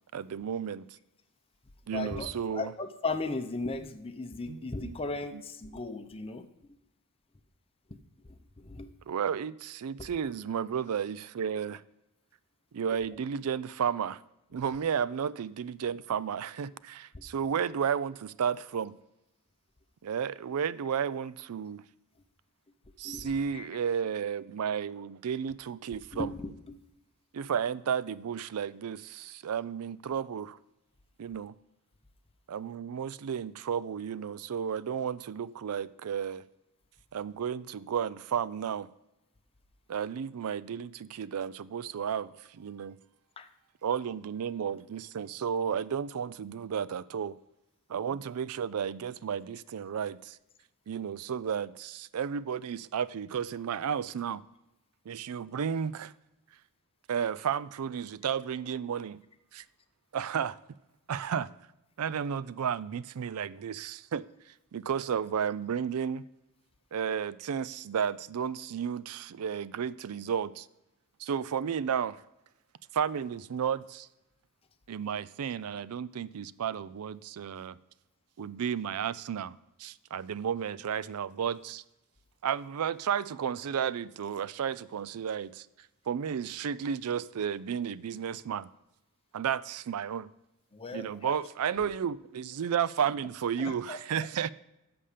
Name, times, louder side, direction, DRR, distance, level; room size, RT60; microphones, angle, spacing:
voice 1, 0.1-0.8 1.9-2.7 4.5-5.0 9.1-11.8 12.7-14.2 14.5-19.0 20.0-21.8 23.0-26.3 27.3-30.6 31.2-31.5 32.5-36.4 37.1-38.9 39.9-43.0 43.8-47.4 47.9-50.4 50.9-54.4 55.1-56.1 57.1-59.2 59.5-59.6 60.1-60.6 61.1-61.5 62.0-66.2 66.9-70.7 71.2-72.2 72.9-74.1 74.9-77.8 78.4-81.8 82.4-85.7 86.1-88.7 89.3-90.3 90.9-94.5, right 7 dB, 75° right, 0.4 m, -33 dB
voice 2, 1.9-6.8 7.9-8.0 8.2-8.9 10.0-10.1 13.1-13.2 14.5-14.6 17.1-17.3 23.0-23.7 26.1-26.8 43.4-43.5 90.7-91.4 93.6-94.3, left 3 dB, 25° left, 0.7 m, -37 dB
11.0 x 6.9 x 5.0 m
head